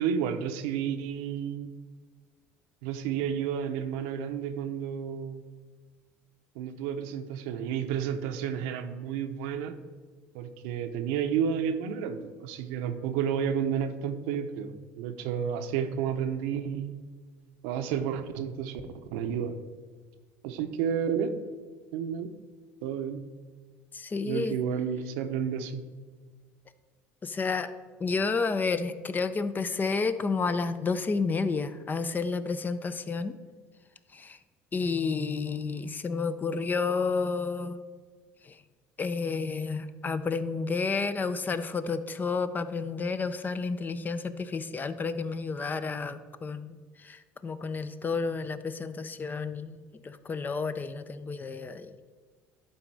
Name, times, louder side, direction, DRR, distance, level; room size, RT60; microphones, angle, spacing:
voice 1, 0.0-1.7 2.8-5.4 6.6-9.8 10.3-16.9 17.6-18.8 19.1-19.6 20.4-21.4 21.9-22.3 22.8-23.2 24.2-25.8, right 8 dB, 80° right, 8 dB, 0.7 m, -31 dB
voice 2, 23.9-24.6 27.2-27.7 28.0-33.4 34.1-34.4 34.7-37.8 38.4-38.6 39.0-52.1, left 4 dB, 25° left, 12 dB, 0.6 m, -31 dB
11.5 x 4.1 x 4.7 m, 1.5 s
supercardioid pair, 85°, 7 cm